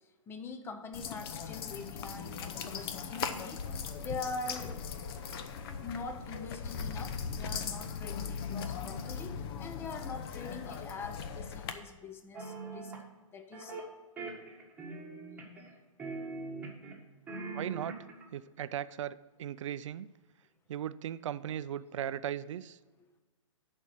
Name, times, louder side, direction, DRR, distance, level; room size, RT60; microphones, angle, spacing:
voice 1, 0.3-3.6 4.0-4.8 5.8-12.9 13.3-13.8 23.0-23.1, left 4 dB, 15° left, 8 dB, 0.7 m, -43 dB
sound 1, 0.9-11.7, left 6 dB, 45° left, 0.9 m, -39 dB
sound 2, 12.3-13.0 13.5-13.9 14.2-15.7 16.0-17.0 17.3-18.2, right 3 dB, 10° right, 1.6 m, -42 dB
voice 2, 17.5-17.9 18.3-20.1 20.7-22.8, right 10 dB, 65° right, 16 dB, 0.5 m, -37 dB
11.0 x 4.5 x 6.3 m, 1.2 s
hypercardioid pair, 130°, 17 cm